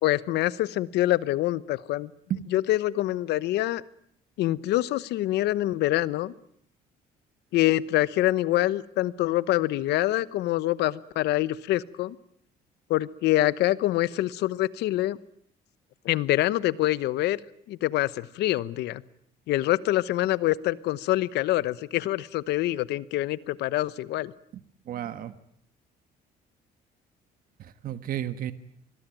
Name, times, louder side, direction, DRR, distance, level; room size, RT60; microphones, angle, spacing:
voice 1, 0.0-2.1 2.5-3.8 4.4-6.3 7.5-12.2 12.9-15.2 16.0-17.4 17.7-19.0 19.5-24.3, left 15 dB, 80° left, 18 dB, 1.0 m, -25 dB
voice 2, 24.8-25.4 27.6-28.5, right 11 dB, 60° right, 12 dB, 1.5 m, -32 dB
25.0 x 20.5 x 9.1 m, 0.66 s
cardioid pair, 110°, 17 cm